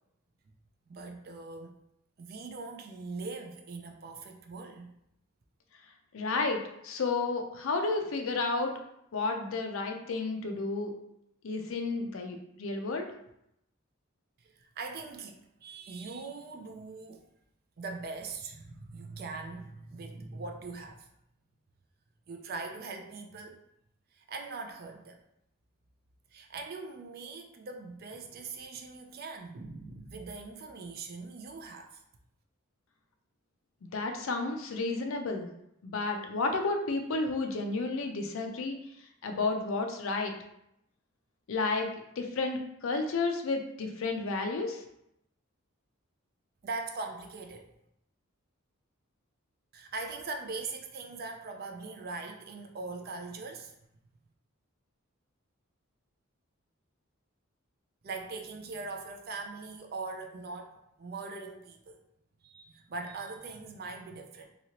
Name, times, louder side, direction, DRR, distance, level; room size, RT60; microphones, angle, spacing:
voice 1, 0.9-1.8 2.2-4.9 14.4-17.2 17.8-21.1 22.3-23.6 24.1-25.2 26.3-32.0 46.6-47.7 49.7-53.7 58.0-62.0 62.4-64.5, right 3 dB, 45° right, 4 dB, 0.4 m, -41 dB
voice 2, 6.1-8.7 9.1-10.9 11.4-13.1 33.9-35.5 35.8-38.8 39.2-40.3 41.5-41.9 42.2-44.8, left 3 dB, 70° left, 5 dB, 0.5 m, -31 dB
2.9 x 2.8 x 2.8 m, 0.79 s
head